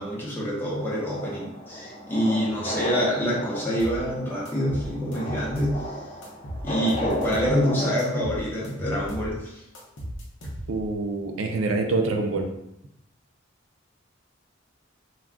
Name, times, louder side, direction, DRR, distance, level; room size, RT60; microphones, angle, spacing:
voice 1, 0.0-6.0 6.6-9.6, equal, 10° left, -6 dB, 0.7 m, -26 dB
sound 1, 0.8-7.9, equal, 30° left, 0.3 m, -34 dB
sound 2, 3.8-4.0 4.5-5.8 6.2-7.6 8.0-9.3 9.7-10.9, equal, 65° left, 0.7 m, -36 dB
voice 2, 10.7-12.5, right 3 dB, 85° right, 3 dB, 0.4 m, -26 dB
2.3 x 2.2 x 3.5 m, 0.84 s
head